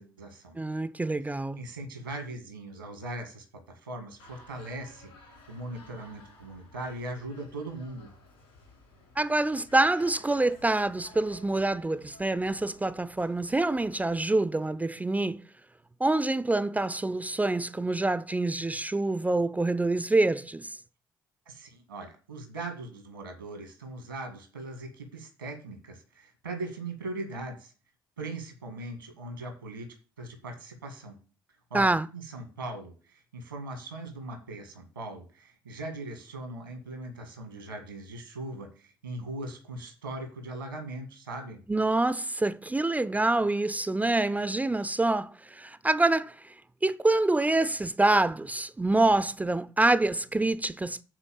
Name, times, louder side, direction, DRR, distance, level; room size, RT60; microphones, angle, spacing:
voice 1, 0.0-0.6 1.6-3.4 3.8-8.1 21.5-27.7 28.2-29.9 30.2-31.2 31.7-41.6, right 2 dB, 85° right, 2.0 m, -40 dB
voice 2, 0.6-1.6 9.2-15.4 16.0-20.8 31.7-32.1 41.7-46.5 46.8-51.0, right 2 dB, 15° right, 0.5 m, -26 dB
sound 1, 4.2-14.2, left 2 dB, 75° left, 4.9 m, -54 dB
8.7 x 4.3 x 7.0 m
figure-of-eight pair, 45°, 11 cm